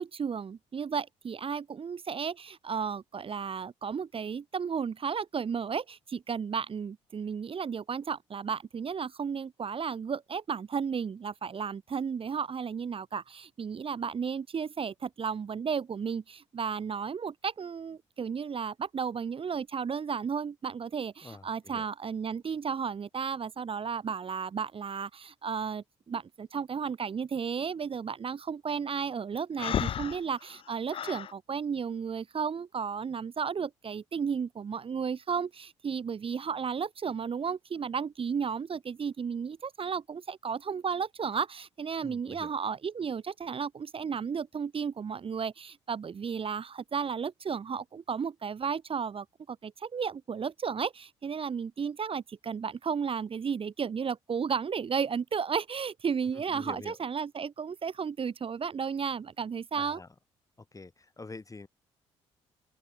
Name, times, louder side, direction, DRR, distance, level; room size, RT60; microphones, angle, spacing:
voice 1, 0.0-60.0, right 6 dB, 40° right, 1.8 m, -33 dB
voice 2, 21.2-21.9 42.0-42.5 56.3-57.0 59.7-60.1 60.7-61.7, left 3 dB, 20° left, 5.1 m, -46 dB
Breathing, 29.6-31.3, left 9 dB, 40° left, 0.5 m, -33 dB
open air
figure-of-eight pair, 45°, 15 cm